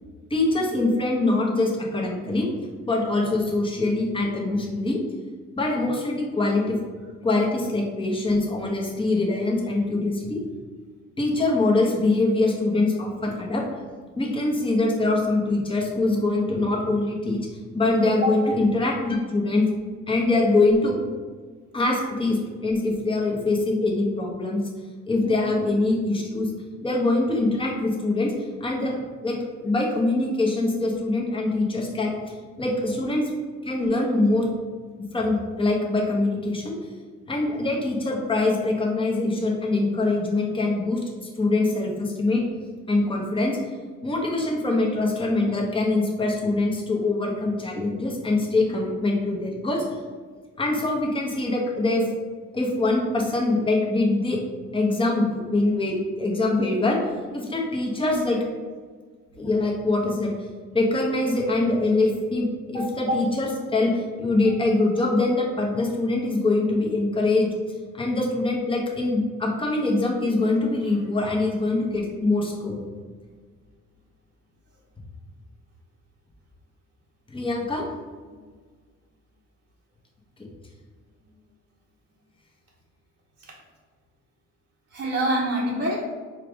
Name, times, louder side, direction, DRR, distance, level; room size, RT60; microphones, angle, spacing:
voice 1, 0.3-2.5 2.9-5.0 5.6-6.8 7.2-10.4 11.2-13.7 14.2-17.4 17.7-19.6 20.1-20.9 21.7-24.6 25.1-26.5 26.8-28.3 28.6-32.1 32.6-33.3 33.6-34.5 35.1-36.7 37.3-41.0 41.4-42.4 42.9-43.6 44.0-50.0 50.6-52.1 52.5-54.4 54.7-57.0 57.3-58.4 59.4-60.3 60.7-67.5 67.9-72.8 77.3-77.8, left 2 dB, 15° left, -2 dB, 1.1 m, -23 dB
voice 2, 25.2-25.6 44.6-44.8 58.0-58.4 63.1-63.3 83.5-83.6 84.9-86.1, right 1 dB, 35° right, -4 dB, 0.9 m, -27 dB
4.6 x 2.4 x 4.9 m, 1.5 s
cardioid pair, 90°, 30 cm